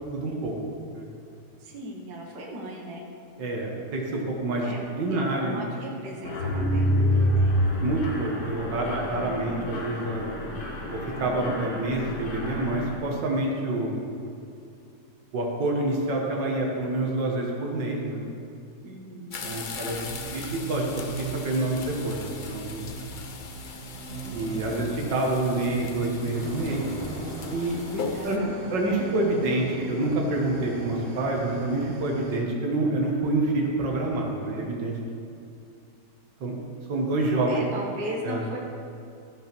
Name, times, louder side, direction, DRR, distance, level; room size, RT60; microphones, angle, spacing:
voice 1, 0.1-0.5 0.9-1.1 3.4-5.6 7.8-10.3 10.9-14.0 15.3-18.2 19.4-20.0 20.3-20.9 21.2-22.9 24.3-26.8 27.5-28.4 28.7-34.9 36.4-36.6 36.9-37.6 38.2-38.4, right 2 dB, 80° right, -1 dB, 2.1 m, -27 dB
voice 2, 1.6-3.1 4.6-4.8 5.1-7.6 18.8-19.6 28.1-28.7 37.5-38.6, equal, 60° right, -1 dB, 1.9 m, -38 dB
Mechanisms, 6.2-13.0, equal, 60° left, 1.8 m, -27 dB
sound 1, 19.3-28.4, left 5 dB, 85° left, 0.4 m, -40 dB
sound 2, 19.7-32.4, right 3 dB, 35° right, 1.6 m, -39 dB
14.5 x 5.8 x 6.1 m, 2.5 s
omnidirectional pair, 1.9 m